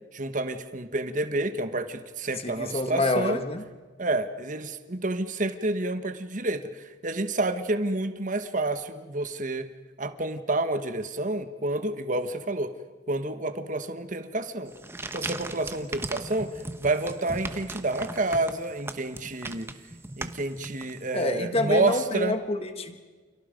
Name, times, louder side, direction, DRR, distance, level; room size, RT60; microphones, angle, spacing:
voice 1, 0.1-3.4 4.0-9.7 10.0-12.7 13.1-14.7 15.1-16.5 16.8-19.7 20.2-22.4, right 2 dB, 40° right, 9 dB, 1.4 m, -29 dB
voice 2, 2.4-3.6 21.1-23.0, left 2 dB, 30° left, 8 dB, 1.6 m, -27 dB
sound 1, 14.7-21.2, right 2 dB, 15° right, 1.0 m, -38 dB
30.0 x 28.5 x 5.3 m, 1.4 s
head